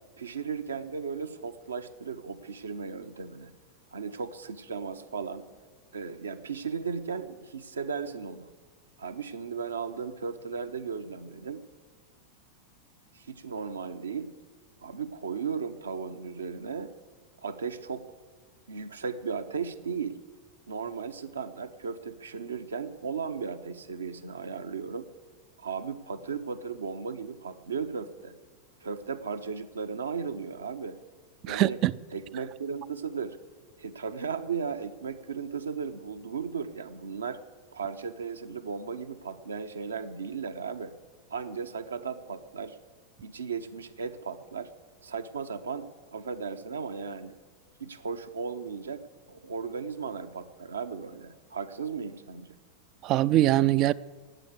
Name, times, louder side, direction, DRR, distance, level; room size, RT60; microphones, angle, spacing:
voice 1, 0.2-3.5 3.9-5.5 5.9-8.5 9.0-11.6 13.1-14.3 14.8-16.9 17.4-18.0 18.7-20.2 20.7-25.1 25.6-28.3 28.8-31.0 31.5-31.8 32.1-33.4 33.8-37.4 37.7-40.9 41.3-42.8 43.2-44.7 45.0-47.4 47.8-49.0 49.3-52.5, right 5 dB, 70° right, 0.9 m, -36 dB
voice 2, 31.5-31.9 53.0-53.9, right 14 dB, 35° right, 0.4 m, -22 dB
18.5 x 7.9 x 8.2 m
figure-of-eight pair, 90°, 0 cm